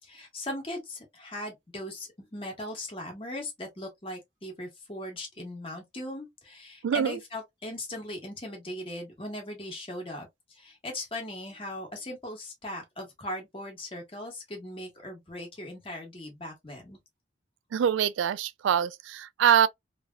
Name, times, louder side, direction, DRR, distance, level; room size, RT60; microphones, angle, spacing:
voice 1, 0.0-17.0, left 1 dB, 30° left, 1.3 m, -39 dB
voice 2, 6.8-7.2 17.7-19.7, right 8 dB, 75° right, 0.3 m, -24 dB
3.2 x 2.8 x 2.3 m
head